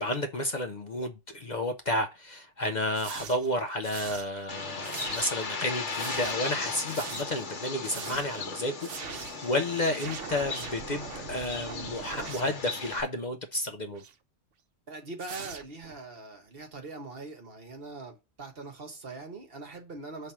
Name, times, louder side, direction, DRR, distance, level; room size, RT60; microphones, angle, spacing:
voice 1, 0.0-14.0, left 1 dB, 45° left, 0.7 m, -31 dB
sound 1, 2.9-3.5 3.8-4.5 4.8-5.5 5.9-6.5 6.9-7.5 7.8-8.4 8.8-9.5 9.8-13.0 13.9-14.1 15.2-16.0, right 8 dB, 85° right, 1.0 m, -42 dB
Bird, 4.5-13.0, left 4 dB, 75° left, 1.5 m, -37 dB
voice 2, 14.9-20.3, right 3 dB, 55° right, 1.4 m, -42 dB
6.0 x 3.4 x 5.6 m
omnidirectional pair, 1.2 m